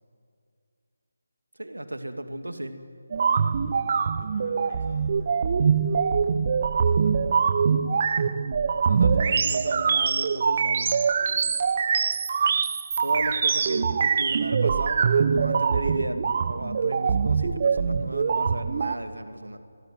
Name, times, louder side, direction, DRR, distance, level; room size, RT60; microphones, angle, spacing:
voice 1, 1.6-2.8 8.8-11.0 13.0-19.6, right 1 dB, 80° right, 8 dB, 2.5 m, -34 dB
sound 1, 3.1-19.0, right 6 dB, 40° right, 0.9 m, -23 dB
voice 2, 3.2-6.0 6.7-7.5 11.1-11.5, left 2 dB, 40° left, -1 dB, 4.8 m, -50 dB
27.5 x 21.5 x 9.3 m, 2.4 s
figure-of-eight pair, 155°, 0 cm